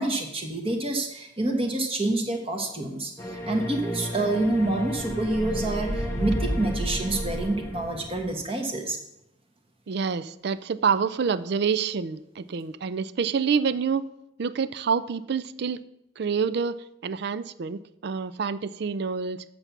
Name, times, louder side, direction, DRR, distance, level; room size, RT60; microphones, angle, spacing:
voice 1, 0.0-9.0, right 2 dB, 30° right, 3 dB, 1.3 m, -27 dB
sound 1, 3.2-8.3, equal, 15° left, 1.2 m, -31 dB
voice 2, 9.9-14.1 14.4-15.8 16.2-19.4, right 6 dB, 55° right, 15 dB, 0.4 m, -27 dB
7.9 x 6.8 x 5.9 m, 0.84 s
head